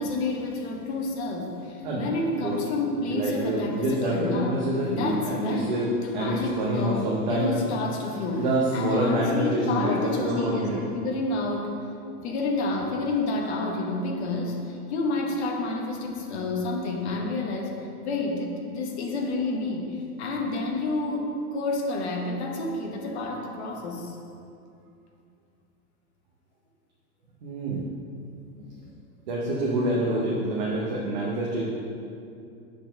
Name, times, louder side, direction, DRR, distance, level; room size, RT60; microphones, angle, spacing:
voice 1, 0.0-4.6 4.9-5.8 6.0-8.4 8.7-11.7 12.2-24.2, left 2 dB, 45° left, 0 dB, 1.1 m, -29 dB
voice 2, 3.1-5.9 6.1-7.7 8.3-10.8 27.4-27.8 29.3-31.6, right 1 dB, 30° right, -4 dB, 0.6 m, -27 dB
6.7 x 4.1 x 6.3 m, 2.5 s
supercardioid pair, 180°, 46 cm